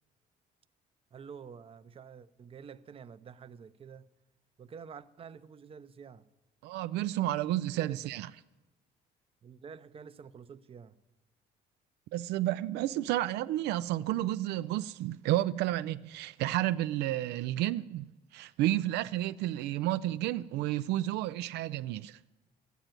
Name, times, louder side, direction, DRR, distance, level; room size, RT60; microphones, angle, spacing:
voice 1, 1.1-4.1 4.6-6.3 7.7-8.1 9.4-11.0, right 6 dB, 35° right, 0.6 m, -49 dB
voice 2, 6.6-8.3 12.1-22.2, right 14 dB, 80° right, 0.4 m, -31 dB
13.5 x 9.2 x 9.0 m
cardioid pair, 110°, 17 cm